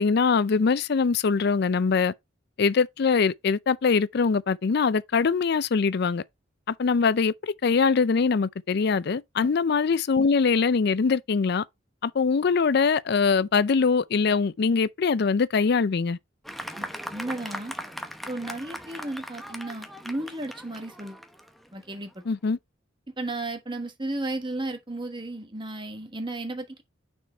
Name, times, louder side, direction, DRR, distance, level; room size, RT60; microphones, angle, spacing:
voice 1, 0.0-2.1 2.6-6.2 6.7-11.6 12.0-16.2 22.3-22.6, left 5 dB, 60° left, 0.4 m, -23 dB
Fireworks, 16.4-22.2, equal, ahead, 0.7 m, -39 dB
voice 2, 16.8-17.7 18.3-21.2 21.7-22.2 23.2-26.8, right 2 dB, 25° right, 1.3 m, -34 dB
6.1 x 4.4 x 4.3 m
head